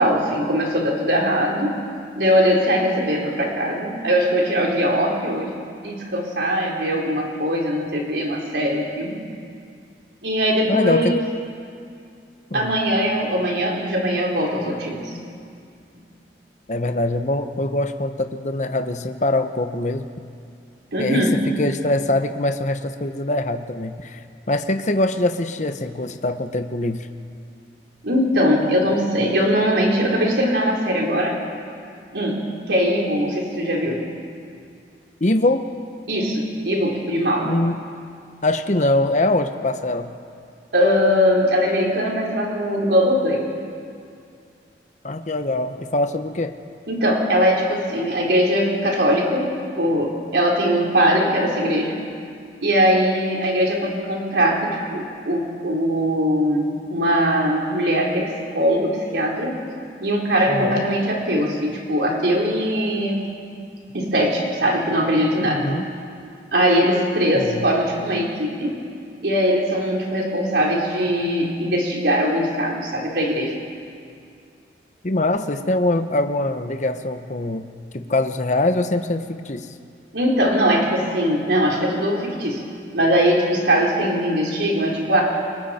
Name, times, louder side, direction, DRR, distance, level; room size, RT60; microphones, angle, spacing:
voice 1, 0.0-1.8 2.2-5.5 5.8-9.2 10.2-11.2 12.5-15.0 20.9-21.4 28.0-31.4 32.1-34.1 36.1-37.5 40.7-43.4 46.9-52.0 52.6-59.6 60.0-63.3 63.9-65.7 66.5-68.9 69.2-73.6 80.1-82.7 82.9-85.2, equal, 75° right, -2 dB, 3.8 m, -21 dB
voice 2, 10.7-11.1 12.5-12.7 16.7-20.1 21.0-24.2 24.5-27.1 35.2-35.7 37.4-37.8 38.4-40.2 45.0-46.6 60.5-60.8 65.4-65.8 67.3-67.7 75.0-79.7, left 2 dB, 45° left, 8 dB, 1.0 m, -23 dB
29.0 x 24.0 x 4.3 m, 2.3 s
head